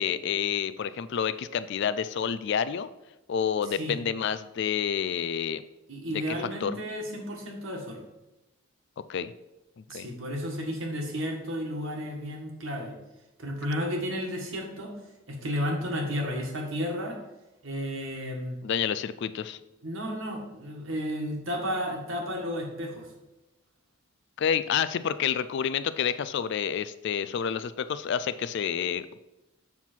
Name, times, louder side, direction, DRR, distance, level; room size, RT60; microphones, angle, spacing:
voice 1, 0.0-2.9 3.3-5.6 6.1-6.8 9.1-9.3 9.8-10.1 18.6-19.6 24.4-29.2, left 8 dB, 55° left, 14 dB, 0.3 m, -29 dB
voice 2, 5.9-8.0 9.9-12.9 13.4-14.9 15.3-17.2 17.6-18.6 19.8-23.1, equal, 60° right, 1 dB, 1.7 m, -32 dB
7.3 x 6.0 x 4.4 m, 0.99 s
head